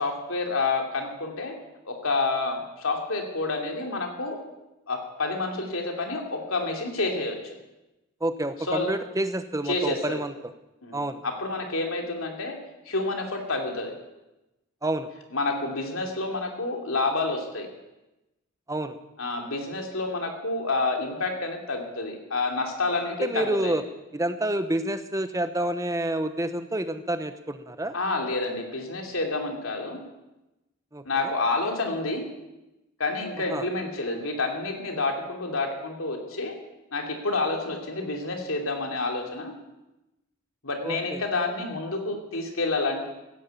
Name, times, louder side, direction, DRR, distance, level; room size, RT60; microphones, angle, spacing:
voice 1, 0.0-1.5 1.9-4.4 4.9-7.5 8.7-8.9 9.7-10.2 10.8-12.6 12.9-14.0 15.3-17.7 19.2-23.8 27.9-30.0 31.0-32.2 33.0-36.6 36.9-39.5 40.6-43.1, left 3 dB, 80° left, 2 dB, 3.0 m, -29 dB
voice 2, 8.2-10.3 10.9-11.2 14.8-15.1 18.7-19.0 23.2-23.8 24.1-27.9 30.9-31.3 33.5-33.7 40.8-41.2, right 1 dB, 15° right, 10 dB, 0.9 m, -28 dB
15.5 x 9.7 x 8.4 m, 0.99 s
head